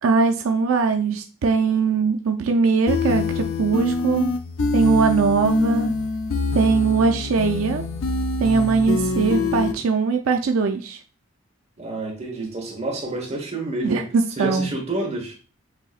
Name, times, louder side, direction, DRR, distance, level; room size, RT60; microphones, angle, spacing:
voice 1, 0.0-4.3 4.7-5.9 6.5-7.8 8.4-11.0 13.8-14.7, right 4 dB, 80° right, 4 dB, 0.4 m, -20 dB
sound 1, 2.9-9.7, left 3 dB, 80° left, 0.5 m, -25 dB
voice 2, 11.8-14.0 14.4-15.4, right 2 dB, 30° right, 0 dB, 1.1 m, -28 dB
6.7 x 2.8 x 2.4 m, 0.36 s
head